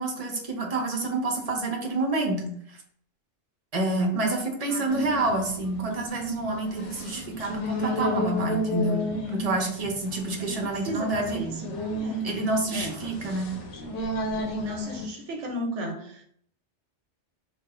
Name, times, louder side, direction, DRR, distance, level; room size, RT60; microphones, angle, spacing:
voice 1, 0.0-2.8 3.7-11.4 12.2-13.5, right 2 dB, 45° right, 2 dB, 0.5 m, -28 dB
voice 2, 4.7-5.2 10.4-12.3 12.7-13.1 14.6-16.2, right 1 dB, 90° right, 2 dB, 1.0 m, -35 dB
sound 1, 4.9-15.1, left 1 dB, 85° left, 1.0 m, -33 dB
3.1 x 2.1 x 3.5 m, 0.64 s
omnidirectional pair, 1.2 m